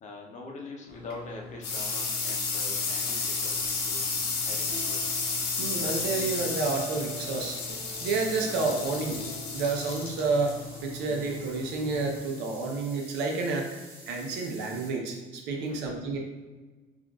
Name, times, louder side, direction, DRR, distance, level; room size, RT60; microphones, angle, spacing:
voice 1, 0.0-4.1 4.4-5.0 15.5-15.9, left 3 dB, 45° left, 0 dB, 0.6 m, -43 dB
sound 1, 0.9-12.2, left 4 dB, 80° left, 0.7 m, -32 dB
sound 2, 3.6-14.9, right 1 dB, 5° right, 1.4 m, -49 dB
sound 3, 4.5-12.0, right 1 dB, 70° right, 0.9 m, -45 dB
voice 2, 5.6-7.6 8.0-9.2 9.5-13.7 14.1-16.2, right 3 dB, 90° right, 1 dB, 0.6 m, -30 dB
3.7 x 2.4 x 2.3 m, 1.3 s
cardioid pair, 110°, 17 cm